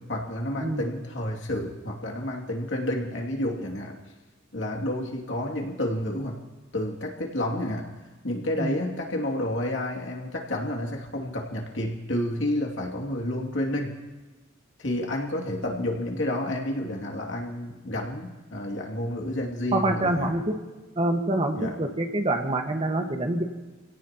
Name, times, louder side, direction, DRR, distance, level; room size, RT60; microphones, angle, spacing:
voice 1, 0.1-3.9 4.5-6.3 6.7-7.9 8.2-13.9 14.8-20.3 21.5-21.8, left 1 dB, 85° left, 0 dB, 2.6 m, -30 dB
voice 2, 19.7-20.6 20.9-23.4, right 2 dB, 35° right, 3 dB, 1.6 m, -26 dB
27.0 x 17.0 x 3.0 m, 1.2 s
head